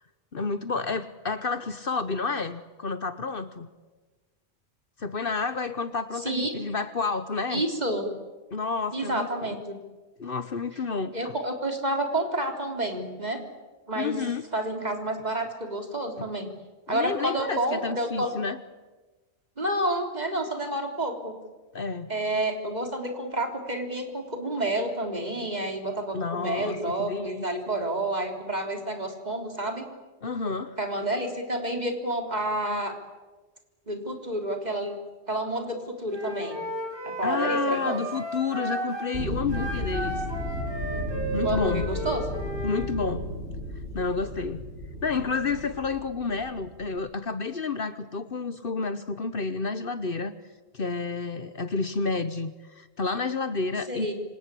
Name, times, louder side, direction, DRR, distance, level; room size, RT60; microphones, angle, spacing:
voice 1, 0.3-3.7 5.0-7.6 8.5-9.6 10.2-11.3 14.0-14.5 16.2-16.3 16.9-18.6 21.7-22.1 26.1-27.5 30.2-30.8 37.2-40.2 41.3-41.9 42.6-43.2 43.9-44.6 45.0-50.3 50.7-54.1, left 4 dB, 55° left, 12 dB, 1.2 m, -30 dB
voice 2, 6.2-6.5 7.5-8.1 8.9-9.8 11.1-13.4 13.9-14.2 14.5-16.5 16.9-18.3 19.6-21.3 22.1-29.8 30.8-32.9 33.9-35.0 35.3-36.6 37.2-38.0 41.4-42.2 53.9-54.1, right 1 dB, 40° right, 4 dB, 3.8 m, -29 dB
Wind instrument woodwind instrument, 36.1-39.1 39.5-42.9, right 1 dB, 20° right, 6.9 m, -33 dB
sound 1, 39.1-46.9, equal, 85° right, 6.6 m, -34 dB
27.5 x 25.5 x 8.4 m, 1.3 s
omnidirectional pair, 1.1 m